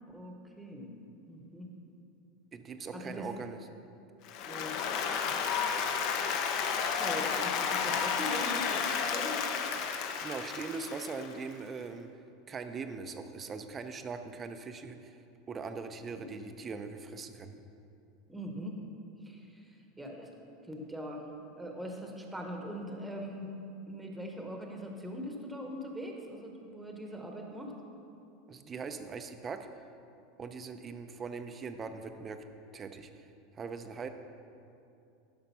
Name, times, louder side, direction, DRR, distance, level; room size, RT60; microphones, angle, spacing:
voice 1, 0.1-0.9 1.3-1.7 2.9-3.3 4.5-4.8 7.0-9.4 16.2-16.3 18.3-18.8 19.2-20.3 20.7-21.3 21.6-23.6 23.9-27.7, equal, 5° right, 1 dB, 1.0 m, -41 dB
voice 2, 2.5-3.7 10.2-12.1 12.5-15.2 15.5-17.6 28.5-29.7 30.4-32.4 32.7-33.2 33.5-34.1, right 5 dB, 20° right, 8 dB, 0.5 m, -41 dB
Applause, 4.3-11.5, left 6 dB, 50° left, 0.7 m, -32 dB
11.5 x 5.1 x 5.5 m, 2.7 s
supercardioid pair, 150°, 0 cm